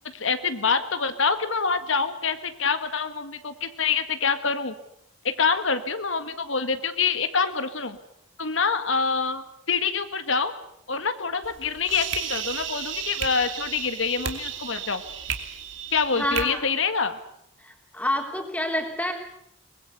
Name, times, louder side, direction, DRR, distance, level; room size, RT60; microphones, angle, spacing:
voice 1, 0.1-4.7 5.2-8.0 8.4-10.5 10.9-15.0 15.9-17.2, left 5 dB, 70° left, 10 dB, 1.7 m, -26 dB
sound 1, 11.4-16.4, right 8 dB, 65° right, 2.8 m, -33 dB
voice 2, 16.2-16.7 17.6-19.1, left 1 dB, 5° left, 3 dB, 3.6 m, -28 dB
23.5 x 21.0 x 8.3 m, 0.74 s
head